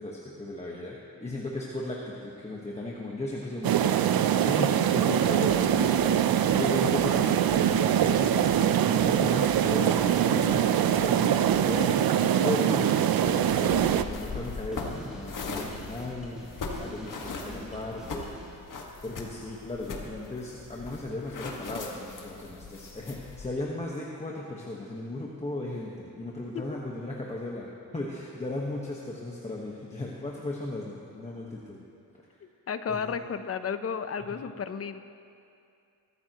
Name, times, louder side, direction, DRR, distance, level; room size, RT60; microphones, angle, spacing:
voice 1, 0.0-4.2 4.4-16.4 16.8-18.3 19.0-31.8 32.9-33.0 34.3-34.4, left 2 dB, 20° left, -4 dB, 1.3 m, -36 dB
sound 1, 3.6-14.0, right 10 dB, 75° right, 0.6 m, -23 dB
voice 2, 4.5-4.9 26.5-26.8 32.7-35.0, left 6 dB, 40° left, 10 dB, 0.7 m, -33 dB
sound 2, 5.2-18.5, equal, ahead, 3.5 m, -46 dB
sound 3, 13.7-23.5, left 3 dB, 60° left, 1.7 m, -40 dB
22.5 x 14.0 x 3.0 m, 2.5 s
wide cardioid pair, 140°, 36 cm